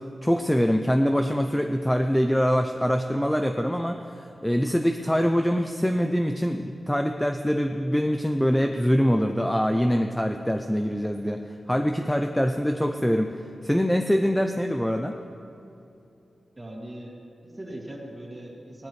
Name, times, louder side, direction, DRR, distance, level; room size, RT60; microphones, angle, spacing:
voice 1, 0.0-15.1, equal, 5° left, 5 dB, 0.4 m, -24 dB
voice 2, 16.6-17.1 17.4-18.9, right 1 dB, 15° right, -3 dB, 2.3 m, -40 dB
18.5 x 13.0 x 3.2 m, 2.7 s
wide cardioid pair, 145°, 0 cm